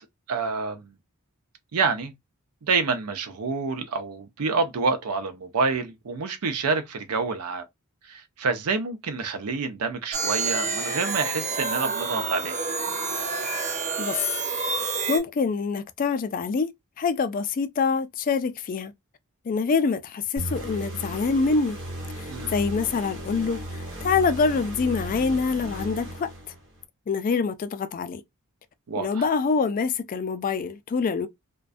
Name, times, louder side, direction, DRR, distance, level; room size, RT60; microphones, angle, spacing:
voice 1, 0.3-0.8 1.7-2.1 2.6-7.6 8.1-12.6 22.3-22.6 28.9-29.3, right 4 dB, 80° right, 0.5 m, -27 dB
sound 1, 10.1-15.2, right 4 dB, 35° right, 0.5 m, -28 dB
voice 2, 15.1-16.7 17.0-18.9 19.5-21.8 22.2-26.3 27.1-28.2 29.0-31.3, left 5 dB, 40° left, 0.3 m, -25 dB
sound 2, 20.4-26.8, equal, 55° right, 1.0 m, -36 dB
2.4 x 2.1 x 2.4 m
head